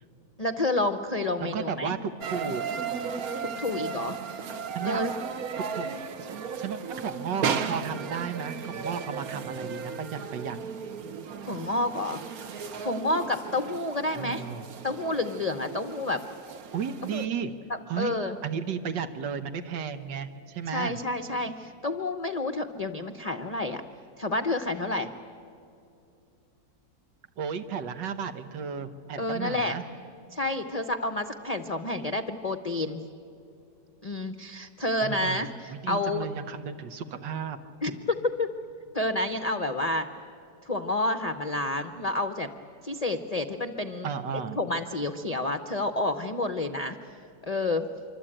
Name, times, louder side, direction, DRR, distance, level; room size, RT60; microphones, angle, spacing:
voice 1, 0.4-1.9 2.5-2.6 3.4-4.5 4.8-5.1 11.4-12.2 12.8-14.4 14.8-16.2 17.1-17.2 18.0-18.4 20.7-23.8 24.2-25.1 29.2-29.7 30.3-33.0 34.0-36.3 37.8-38.5 38.9-40.1 40.6-42.5 42.8-44.1 44.6-47.0 47.4-47.9, left 2 dB, 35° left, 8 dB, 0.6 m, -29 dB
voice 2, 1.4-2.7 4.7-5.0 5.7-5.9 6.2-10.6 14.1-14.7 16.7-17.5 17.9-18.1 18.4-21.0 27.4-29.8 35.0-37.6 44.0-44.6, right 7 dB, 85° right, 8 dB, 1.7 m, -34 dB
sound 1, 2.2-17.3, right 6 dB, 60° right, 1.4 m, -35 dB
26.0 x 24.5 x 8.9 m, 2.6 s
omnidirectional pair, 1.9 m